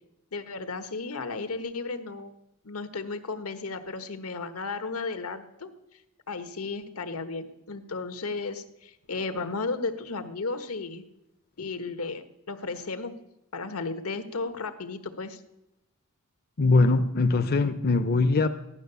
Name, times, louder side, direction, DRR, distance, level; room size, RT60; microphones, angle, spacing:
voice 1, 0.3-2.3 2.6-5.7 6.3-11.0 11.6-13.2 13.5-15.4, left 3 dB, 85° left, 1.3 m, -34 dB
voice 2, 16.6-18.5, left 3 dB, 45° left, 0.6 m, -22 dB
15.0 x 11.5 x 6.9 m
head